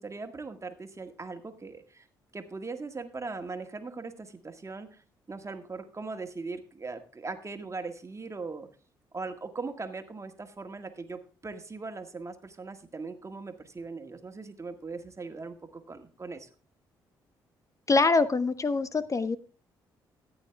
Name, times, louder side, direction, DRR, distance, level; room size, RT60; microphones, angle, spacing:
voice 1, 0.0-2.1 2.3-5.0 5.3-8.7 9.1-16.5, right 3 dB, 30° right, 7 dB, 1.8 m, -40 dB
voice 2, 17.9-19.4, left 3 dB, 30° left, 14 dB, 0.7 m, -24 dB
14.0 x 8.8 x 3.4 m, 0.36 s
hypercardioid pair, 45°, 10 cm